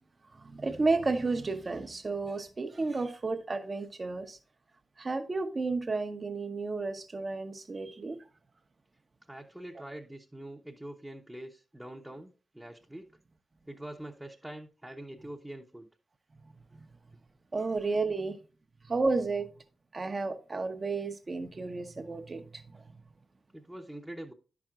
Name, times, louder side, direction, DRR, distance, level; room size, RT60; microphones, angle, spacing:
voice 1, 0.4-4.4 5.0-8.2 16.8-16.9 17.5-18.4 18.8-19.5 19.9-22.9, right 3 dB, 40° right, 1.0 m, -32 dB
voice 2, 9.3-13.1 13.7-15.9 23.5-24.3, right 1 dB, 10° right, 0.9 m, -44 dB
10.5 x 6.0 x 2.5 m
supercardioid pair, 40°, 0 cm